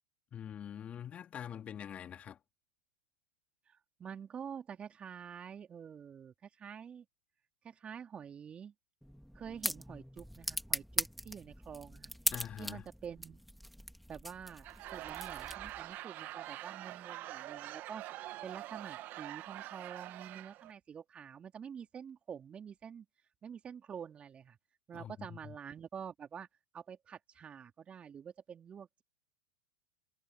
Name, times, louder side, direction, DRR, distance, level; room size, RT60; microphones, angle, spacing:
voice 1, 0.3-2.4 12.3-12.8 24.9-25.6, left 9 dB, 30° left, 2.7 m, -45 dB
voice 2, 3.7-7.0 7.6-8.7 9.3-12.1 12.6-13.4 14.1-14.7 14.9-18.0 18.4-23.1 23.4-24.6 24.9-26.5 26.7-29.0, right 7 dB, 25° right, 3.4 m, -47 dB
sound 1, 9.0-15.9, equal, ahead, 2.3 m, -40 dB
Laughter / Crowd, 14.5-20.7, right 16 dB, 45° right, 1.5 m, -45 dB
hypercardioid pair, 105°, 5 cm